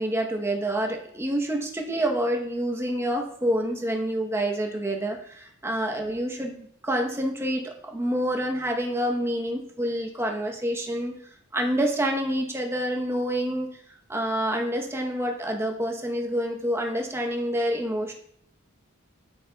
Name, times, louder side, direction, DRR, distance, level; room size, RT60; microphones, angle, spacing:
voice 1, 0.0-11.1 11.5-13.7 14.1-18.1, right 1 dB, 10° right, 1 dB, 1.0 m, -27 dB
9.5 x 8.2 x 2.3 m, 0.66 s
head